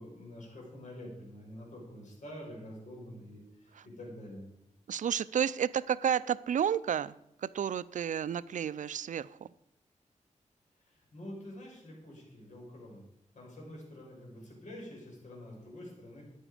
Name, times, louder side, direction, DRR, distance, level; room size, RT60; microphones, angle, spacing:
voice 1, 0.0-4.5 10.8-13.0 13.3-16.2, left 1 dB, 65° left, -1 dB, 5.6 m, -47 dB
voice 2, 4.9-9.4, right 8 dB, 75° right, 17 dB, 0.4 m, -31 dB
14.0 x 9.9 x 5.0 m, 0.84 s
wide cardioid pair, 120°, 13 cm